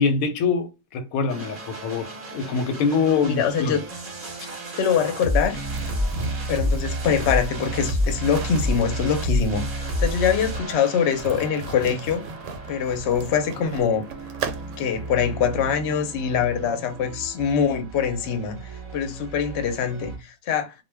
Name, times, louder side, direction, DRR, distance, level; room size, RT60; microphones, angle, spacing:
voice 1, 0.0-3.8, left 5 dB, 85° left, 1.0 m, -24 dB
sound 1, 1.3-20.2, equal, 40° right, 0.7 m, -31 dB
voice 2, 3.1-3.8 4.8-5.6 6.5-9.7 10.0-12.2 12.7-14.0 14.8-20.7, left 7 dB, 60° left, 0.8 m, -24 dB
sound 2, 5.7-15.0, right 4 dB, 70° right, 0.8 m, -37 dB
2.2 x 2.2 x 3.2 m
omnidirectional pair, 1.4 m